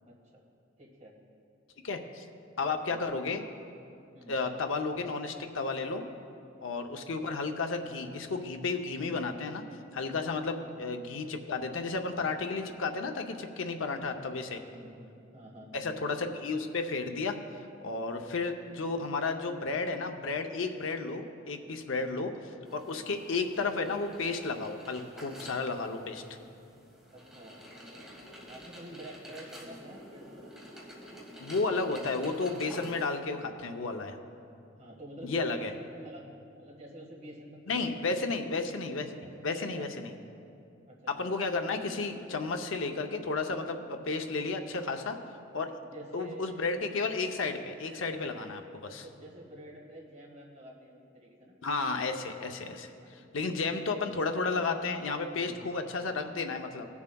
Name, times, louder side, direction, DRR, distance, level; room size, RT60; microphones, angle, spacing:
voice 1, 0.0-0.4 0.8-1.2 2.6-3.0 4.1-4.4 14.5-15.9 21.9-22.1 22.9-23.1 27.1-27.6 28.5-30.5 34.8-36.2 36.6-38.3 39.4-40.0 40.9-41.0 45.8-46.5 48.9-51.6 53.7-53.9 55.4-55.8, right 1 dB, 35° right, -2 dB, 1.6 m, -48 dB
voice 2, 1.8-2.2 2.6-3.4 4.3-6.0 6.6-9.6 9.9-14.6 15.7-17.4 17.8-22.3 22.7-26.2 31.4-34.2 35.2-35.7 37.7-40.1 41.1-45.2 45.5-45.7 46.1-49.0 51.6-52.9 53.3-56.9, left 3 dB, 80° left, 5 dB, 0.6 m, -32 dB
sound 1, 22.6-33.2, equal, 5° right, 1.6 m, -49 dB
19.5 x 7.1 x 2.3 m, 2.6 s
head